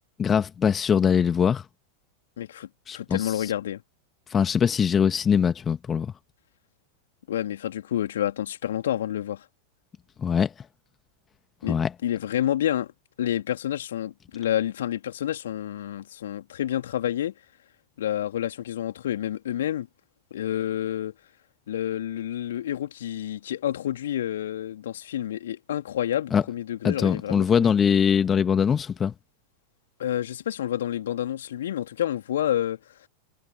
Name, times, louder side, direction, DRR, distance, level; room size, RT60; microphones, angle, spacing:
voice 1, 0.2-1.7 2.9-3.5 4.3-6.1 10.2-10.5 11.7-11.9 26.3-26.4 26.8-29.1, left 7 dB, 20° left, 1.7 m, -22 dB
voice 2, 2.4-3.8 7.3-9.4 11.6-12.9 13.2-17.3 18.0-19.9 20.3-21.1 21.7-27.7 30.0-32.8, left 11 dB, 60° left, 3.1 m, -29 dB
figure-of-eight pair, 90°, 0 cm